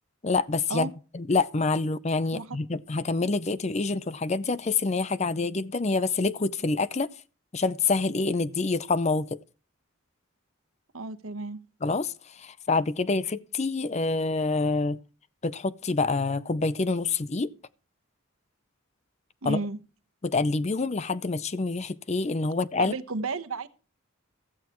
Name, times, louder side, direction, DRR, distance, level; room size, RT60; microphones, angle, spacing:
voice 1, 0.2-7.1 7.5-9.4 11.8-15.0 15.4-17.5 19.4-19.6 20.2-22.9, left 3 dB, 30° left, 0.5 m, -27 dB
voice 2, 10.9-11.6 19.4-19.8 22.8-23.7, right 3 dB, 80° right, 1.1 m, -32 dB
15.5 x 14.0 x 3.0 m
head